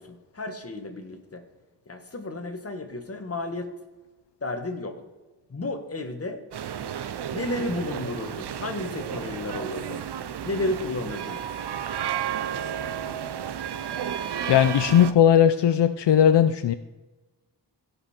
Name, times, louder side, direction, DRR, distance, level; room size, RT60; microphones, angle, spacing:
voice 1, 0.0-1.4 1.9-3.7 4.4-4.9 5.5-6.4 7.3-10.0 10.4-11.4, left 2 dB, 35° left, 5 dB, 1.5 m, -32 dB
sound 1, 6.5-15.1, right 9 dB, 70° right, 0.6 m, -32 dB
voice 2, 14.5-16.7, left 9 dB, 75° left, 11 dB, 0.5 m, -18 dB
16.0 x 5.4 x 4.3 m, 1.2 s
wide cardioid pair, 110°, 42 cm